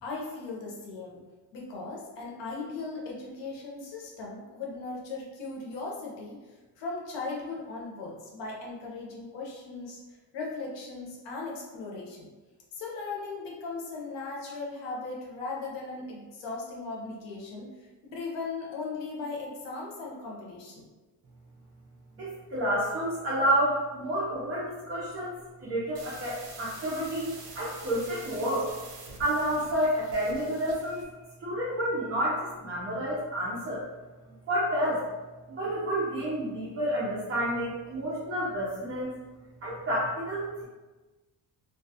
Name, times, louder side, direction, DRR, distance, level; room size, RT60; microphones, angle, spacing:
voice 1, 0.0-1.2 1.5-10.0 10.3-12.3 12.7-20.9, left 3 dB, 85° left, -2 dB, 0.7 m, -38 dB
voice 2, 22.2-28.7 29.2-31.1 31.4-33.8 34.5-35.0 35.5-39.1 39.6-40.6, equal, 30° right, -8 dB, 0.5 m, -29 dB
sound 1, 25.9-31.1, right 3 dB, 75° right, 0.7 m, -46 dB
2.3 x 2.3 x 2.7 m, 1.2 s
cardioid pair, 165°, 42 cm